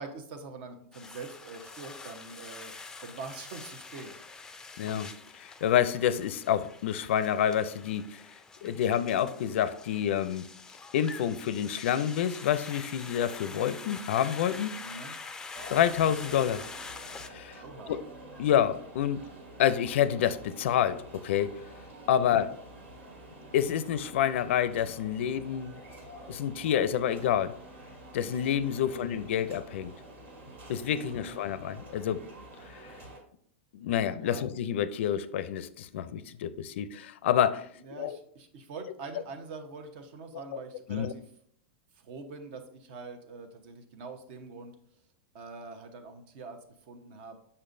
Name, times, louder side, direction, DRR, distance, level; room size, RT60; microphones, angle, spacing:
voice 1, 0.0-2.7 3.0-4.1 14.8-15.1 17.6-17.9 22.2-22.5 28.7-29.1 31.0-31.3 34.2-34.4 37.8-41.2 42.0-44.7 45.3-46.6 46.9-47.4, right 4 dB, 60° right, 1.0 m, -44 dB
sound 1, 0.9-17.3, left 4 dB, 10° left, 0.4 m, -45 dB
voice 2, 4.8-8.2 8.6-10.5 10.9-14.8 15.7-16.7 17.2-17.6 17.9-18.0 18.4-19.2 19.6-21.5 22.1-22.6 23.5-25.7 26.3-27.5 28.1-29.9 30.7-32.2 32.7-32.9 33.7-38.2 40.5-40.6 40.9-41.1, left 10 dB, 75° left, 0.4 m, -28 dB
sound 2, 15.5-33.2, right 1 dB, 85° right, 2.5 m, -48 dB
6.6 x 5.5 x 2.6 m
supercardioid pair, 135°, 7 cm